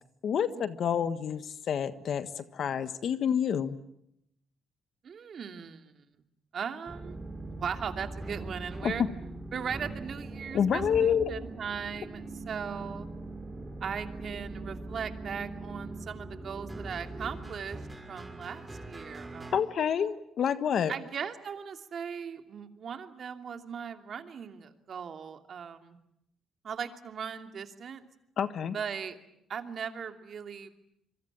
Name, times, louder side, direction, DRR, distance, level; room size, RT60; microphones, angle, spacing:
voice 1, 0.2-3.8 8.8-8.9 10.5-11.2 19.5-20.9 28.4-28.7, left 8 dB, 60° left, 11 dB, 1.4 m, -28 dB
voice 2, 5.0-6.0 6.5-7.2 7.6-9.0 9.5-13.1 13.8-17.8 18.1-19.6 20.9-26.0 26.6-28.1 28.7-29.2 29.5-30.7, right 7 dB, 55° right, 6 dB, 2.7 m, -38 dB
sound 1, 6.9-19.6, right 2 dB, 15° right, 5.8 m, -41 dB
26.5 x 24.0 x 8.9 m, 0.78 s
cardioid pair, 90°, 0 cm